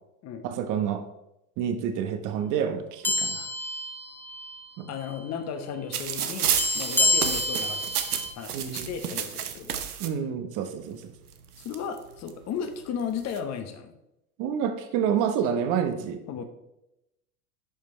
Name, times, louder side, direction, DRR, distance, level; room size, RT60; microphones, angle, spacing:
voice 1, 0.4-1.0 1.6-3.4 4.8-4.9 8.5-8.9 10.0-11.1 14.4-16.4, right 8 dB, 45° right, 8 dB, 1.1 m, -28 dB
sound 1, 3.0-4.7 5.0-5.2 6.6-8.3, left 2 dB, 5° left, 1.3 m, -28 dB
voice 2, 4.9-7.9 8.4-9.8 11.6-13.9 16.3-16.4, left 7 dB, 35° left, 7 dB, 1.2 m, -35 dB
sound 2, 5.9-10.1 11.0-11.1 11.3-12.3 13.0-13.4, right 9 dB, 85° right, 0.9 m, -31 dB
11.5 x 5.1 x 3.2 m, 0.87 s
hypercardioid pair, 95°, 44 cm